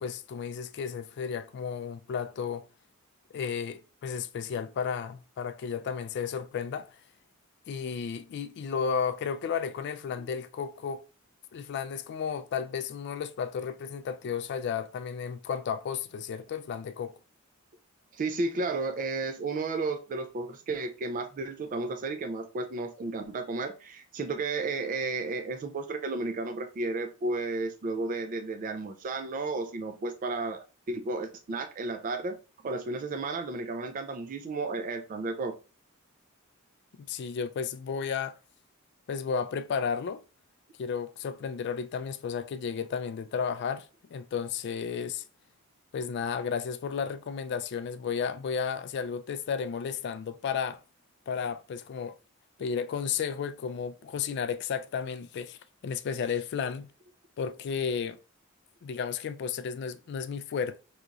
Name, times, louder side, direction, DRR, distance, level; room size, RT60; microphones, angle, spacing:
voice 1, 0.0-2.7 3.3-7.0 7.7-11.0 11.5-17.2 37.0-38.4 39.1-40.2 40.8-45.2 45.9-50.8 51.3-52.1 52.6-56.9 57.4-58.2 58.8-60.8, left 6 dB, 55° left, 0.3 m, -33 dB
voice 2, 18.1-32.4 32.6-35.6, right 3 dB, 40° right, 0.3 m, -33 dB
3.8 x 2.9 x 2.3 m
head